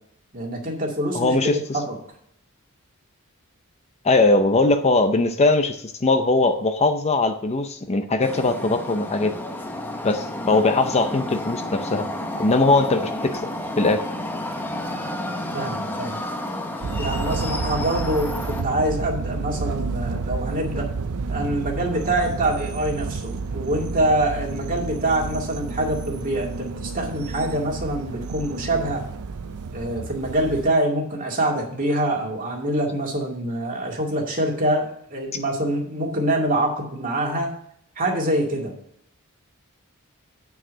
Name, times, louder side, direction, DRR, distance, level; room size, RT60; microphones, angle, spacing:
voice 1, 0.3-2.0 15.5-16.2 17.0-20.9 21.3-29.0 29.7-37.5 38.0-38.7, right 1 dB, 40° right, 0 dB, 2.2 m, -25 dB
voice 2, 1.1-1.8 4.0-9.4 10.0-12.1 12.4-13.4 13.8-14.0, left 3 dB, 30° left, 8 dB, 0.6 m, -20 dB
sound 1, 8.2-18.6, left 1 dB, 10° left, 0.9 m, -31 dB
sound 2, 16.8-30.7, right 4 dB, 85° right, 0.6 m, -30 dB
8.8 x 4.8 x 6.2 m, 0.69 s
head